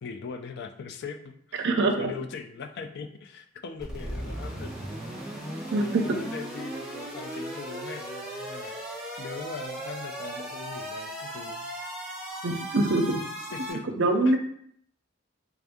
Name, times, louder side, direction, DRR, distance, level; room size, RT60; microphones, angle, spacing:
voice 1, 0.0-1.7 2.0-4.7 5.6-8.8 9.2-11.7 13.5-13.9 14.3-14.4, left 5 dB, 55° left, 7 dB, 0.4 m, -40 dB
voice 2, 1.6-2.1 5.7-6.1 12.4-13.1 14.0-14.4, right 2 dB, 60° right, 5 dB, 0.5 m, -23 dB
sound 1, 3.8-13.7, right 1 dB, 5° right, 1.1 m, -37 dB
3.4 x 2.6 x 3.5 m, 0.68 s
head